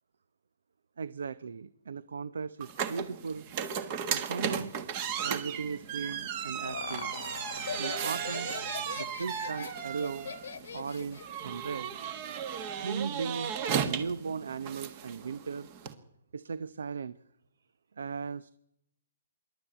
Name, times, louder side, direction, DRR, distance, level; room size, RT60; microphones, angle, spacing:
voice 1, 1.0-3.4 4.1-4.7 5.2-7.1 7.8-8.5 9.0-10.3 10.7-12.0 12.6-13.5 13.8-15.7 16.3-17.2 18.0-18.5, right 5 dB, 75° right, 15 dB, 0.8 m, -37 dB
sound 1, 2.6-15.9, right 8 dB, 25° right, 1.5 m, -36 dB
Laughter, 6.2-11.4, left 7 dB, 60° left, 1.1 m, -41 dB
25.5 x 11.5 x 9.0 m, 0.79 s
hypercardioid pair, 170°, 0 cm